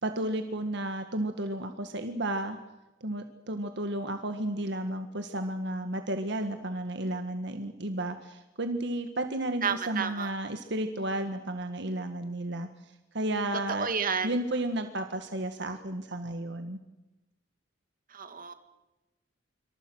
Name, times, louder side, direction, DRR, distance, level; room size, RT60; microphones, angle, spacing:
voice 1, 0.0-2.6 3.0-12.7 13.1-13.9 14.2-16.8, right 1 dB, 65° right, 7 dB, 1.7 m, -32 dB
voice 2, 9.6-10.3 13.7-14.4 18.1-18.5, right 6 dB, 50° right, 8 dB, 2.3 m, -31 dB
27.0 x 25.0 x 6.4 m, 1.0 s
head